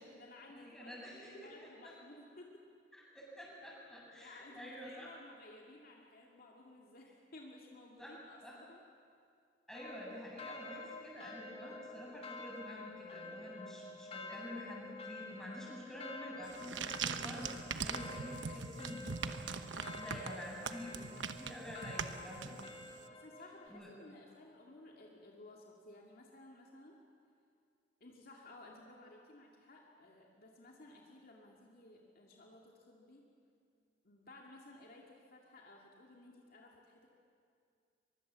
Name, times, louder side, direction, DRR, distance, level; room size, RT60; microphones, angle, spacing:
voice 1, 0.0-2.7 4.2-8.8 22.9-27.0 28.0-33.3 34.0-37.1, left 2 dB, 55° left, -1 dB, 2.4 m, -56 dB
voice 2, 0.5-1.7 3.1-5.1 8.0-8.1 8.4-8.5 9.7-22.6 23.7-23.9, left 1 dB, 5° left, -4 dB, 7.3 m, -48 dB
sound 1, 9.7-23.7, left 3 dB, 35° left, 1.9 m, -50 dB
sound 2, 16.4-23.0, right 5 dB, 85° right, 1.0 m, -42 dB
23.5 x 22.5 x 7.5 m, 2.3 s
head